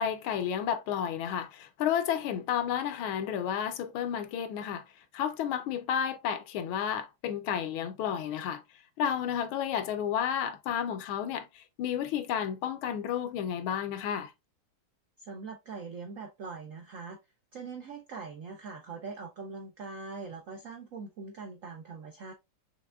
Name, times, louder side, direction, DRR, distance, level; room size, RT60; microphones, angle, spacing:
voice 1, 0.0-4.8 5.1-8.6 9.0-14.3, left 9 dB, 75° left, 1.4 m, -31 dB
voice 2, 15.2-17.2 17.5-22.3, right 4 dB, 70° right, 0.7 m, -42 dB
6.1 x 3.3 x 2.2 m
omnidirectional pair, 2.3 m